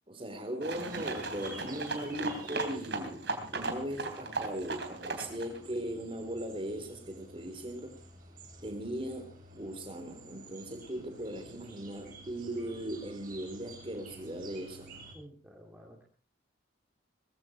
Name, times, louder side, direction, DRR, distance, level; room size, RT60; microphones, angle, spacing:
voice 1, 0.1-8.0 8.6-15.0, right 1 dB, 30° right, 6 dB, 3.9 m, -38 dB
sound 1, 0.6-5.6, right 3 dB, 65° right, 3.3 m, -37 dB
sound 2, 0.7-15.1, right 2 dB, 45° right, 7.9 m, -52 dB
voice 2, 15.1-16.0, equal, 10° right, -1 dB, 2.4 m, -52 dB
20.5 x 15.0 x 4.4 m, 0.40 s
head